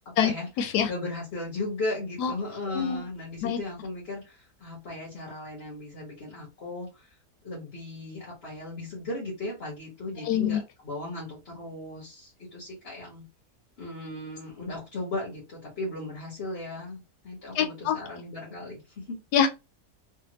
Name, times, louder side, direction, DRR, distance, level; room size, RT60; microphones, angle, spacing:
voice 1, 0.0-0.5 0.9-7.1 7.4-13.2 13.8-19.2, left 2 dB, 45° left, 1.5 m, -36 dB
voice 2, 0.6-0.9 2.2-2.3 2.7-3.0 3.4-3.6 10.3-10.6 17.6-18.0 19.3-19.5, left 8 dB, 90° left, 1.1 m, -24 dB
3.5 x 2.5 x 2.9 m
omnidirectional pair, 1.7 m